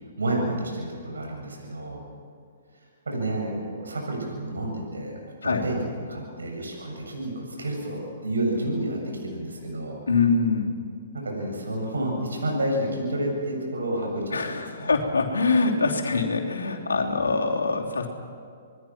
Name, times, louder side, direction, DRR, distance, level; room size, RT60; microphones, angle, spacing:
voice 1, 0.2-2.0 3.1-10.0 11.1-15.0, right 1 dB, 85° right, 0 dB, 7.2 m, -30 dB
voice 2, 10.1-10.7 14.3-18.1, left 4 dB, 85° left, 0 dB, 3.3 m, -24 dB
27.0 x 21.0 x 6.1 m, 2.4 s
hypercardioid pair, 130°, 0 cm